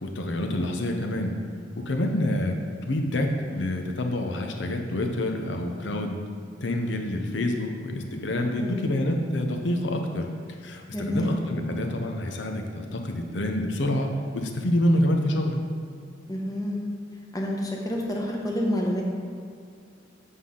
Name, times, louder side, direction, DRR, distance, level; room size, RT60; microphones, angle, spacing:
voice 1, 0.0-1.4 1.8-2.5 2.9-6.2 6.6-15.6, left 1 dB, 75° left, 4 dB, 0.8 m, -27 dB
voice 2, 8.4-8.9 10.9-11.3 16.3-16.8 17.3-19.0, left 1 dB, 20° left, -1 dB, 1.0 m, -28 dB
8.1 x 5.6 x 3.8 m, 2.3 s
head